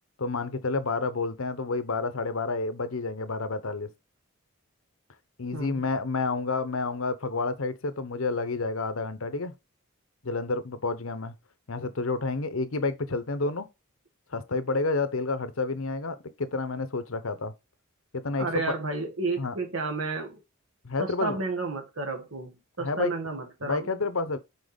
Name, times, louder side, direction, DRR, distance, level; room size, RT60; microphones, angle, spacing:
voice 1, 0.2-3.9 5.4-9.6 10.2-11.3 11.7-13.7 14.3-17.5 18.1-18.7 19.4-19.5 20.8-21.4 22.8-23.1 23.6-24.4, left 3 dB, 70° left, 0.9 m, -29 dB
voice 2, 5.5-5.8 18.4-20.4 21.0-23.9, right 3 dB, 70° right, 2.0 m, -32 dB
6.4 x 4.6 x 5.2 m
head